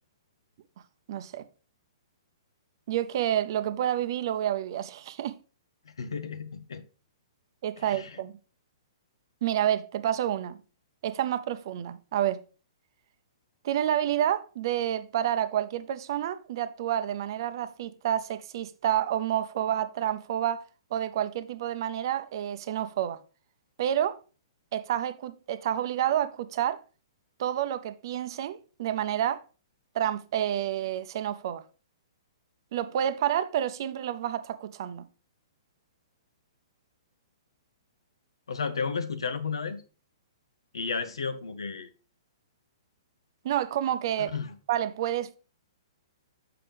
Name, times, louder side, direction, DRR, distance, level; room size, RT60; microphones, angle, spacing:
voice 1, 1.1-1.4 2.9-5.4 7.6-8.3 9.4-10.6 11.0-12.4 13.6-20.6 20.9-23.2 23.8-24.2 24.7-26.8 27.4-29.4 29.9-31.6 32.7-35.0 43.4-44.3 44.7-45.4, right 11 dB, 55° right, 0.7 m, -29 dB
voice 2, 6.0-6.8 7.9-8.1 38.5-39.8 40.7-41.9 44.2-44.5, left 5 dB, 80° left, 0.9 m, -33 dB
6.8 x 5.9 x 3.4 m
hypercardioid pair, 125°, 3 cm